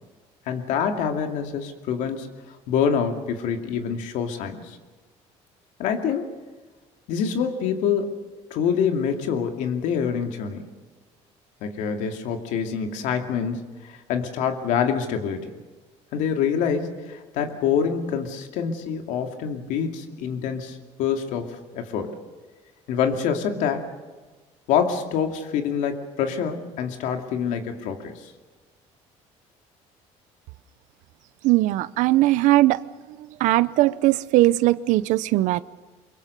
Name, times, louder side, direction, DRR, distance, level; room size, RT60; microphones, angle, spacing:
voice 1, 0.5-2.3 2.7-4.8 5.8-6.3 7.1-8.2 8.5-10.6 11.6-15.5 16.1-22.2 22.9-23.9 24.7-28.3, left 7 dB, 80° left, 5 dB, 2.5 m, -26 dB
voice 2, 31.4-32.8 33.4-35.6, right 17 dB, 80° right, 17 dB, 0.6 m, -19 dB
24.0 x 22.5 x 6.8 m, 1.3 s
cardioid pair, 110°, 13 cm